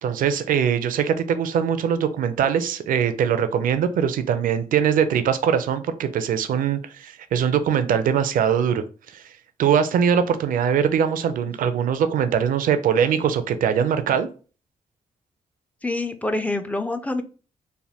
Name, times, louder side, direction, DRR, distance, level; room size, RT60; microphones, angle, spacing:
voice 1, 0.0-8.8 9.1-9.2 9.6-14.3, right 8 dB, 70° right, 10 dB, 0.4 m, -22 dB
voice 2, 15.8-17.2, left 2 dB, 10° left, 8 dB, 0.3 m, -26 dB
3.2 x 2.1 x 2.7 m, 0.37 s
cardioid pair, 70°, 15 cm